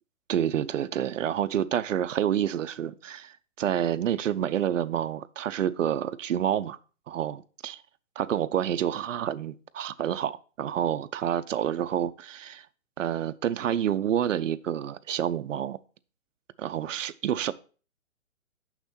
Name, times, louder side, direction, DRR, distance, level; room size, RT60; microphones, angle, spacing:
voice 1, 0.3-6.8 7.1-7.8 8.2-12.7 13.0-15.8 16.6-17.5, right 10 dB, 70° right, 0.6 m, -28 dB
6.1 x 6.0 x 4.2 m
hypercardioid pair, 175°, 39 cm